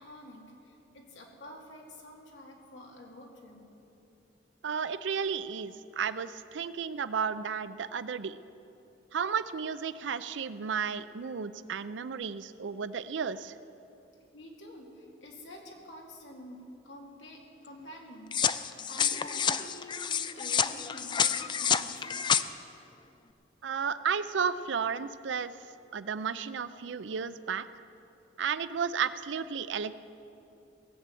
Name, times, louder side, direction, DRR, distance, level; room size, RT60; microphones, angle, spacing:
voice 1, 0.0-3.7 14.3-22.3, left 1 dB, 80° left, 0 dB, 2.2 m, -48 dB
voice 2, 4.6-8.4 9.1-13.5 23.6-25.5 25.9-27.6 28.4-29.9, right 6 dB, 80° right, 14 dB, 0.5 m, -33 dB
sound 1, 18.3-22.4, left 7 dB, 25° left, 0.3 m, -29 dB
18.0 x 7.6 x 7.6 m, 2.8 s
head